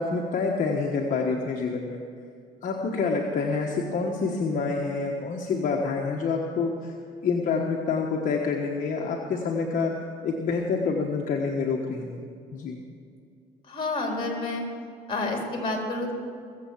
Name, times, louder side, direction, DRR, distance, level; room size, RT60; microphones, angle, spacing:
voice 1, 0.0-2.0 2.6-6.9 7.2-9.9 10.2-12.8, left 4 dB, 50° left, 0 dB, 1.4 m, -27 dB
voice 2, 13.7-14.6 15.1-16.1, left 2 dB, 30° left, 1 dB, 3.8 m, -29 dB
21.0 x 7.8 x 7.4 m, 2.4 s
cardioid pair, 110°, 17 cm